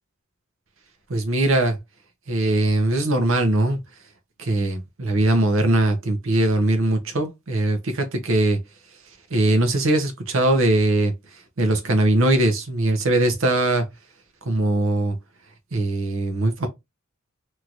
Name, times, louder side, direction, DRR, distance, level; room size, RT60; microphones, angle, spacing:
voice 1, 1.1-1.8 2.3-3.8 4.4-8.6 8.9-13.9 14.4-15.2 15.7-16.7, right 2 dB, 65° right, 0.8 m, -21 dB
3.0 x 2.8 x 2.4 m
head